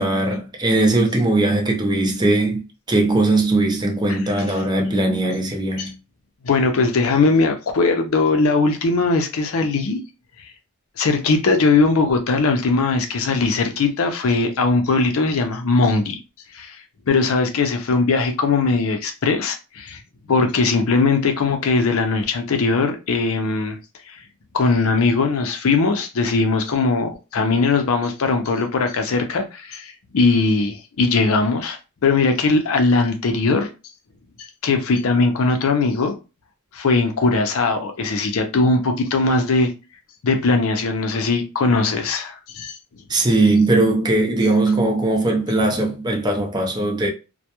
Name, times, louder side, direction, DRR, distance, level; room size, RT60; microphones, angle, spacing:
voice 1, 0.0-5.9 43.1-47.1, right 2 dB, 20° right, 0.5 m, -19 dB
voice 2, 4.1-4.6 5.8-5.9 6.4-10.0 11.0-16.2 16.5-16.8 17.1-20.0 20.3-23.8 24.1-24.2 24.5-33.7 34.6-36.2 36.7-39.7 40.2-42.8, left 3 dB, 70° left, 0.5 m, -20 dB
2.2 x 2.1 x 2.8 m
head